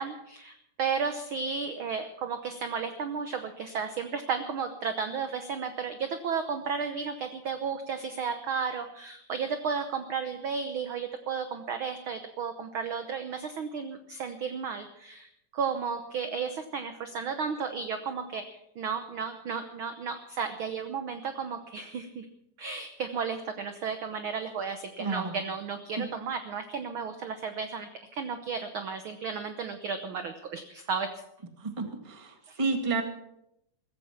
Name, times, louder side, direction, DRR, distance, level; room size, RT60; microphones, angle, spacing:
voice 1, 0.0-22.3 22.6-31.1 32.5-32.6, right 6 dB, 65° right, 8 dB, 1.3 m, -33 dB
voice 2, 25.0-25.4 26.0-26.1 31.6-33.0, right 3 dB, 15° right, 5 dB, 1.3 m, -31 dB
15.0 x 15.0 x 5.8 m, 0.79 s
omnidirectional pair, 3.4 m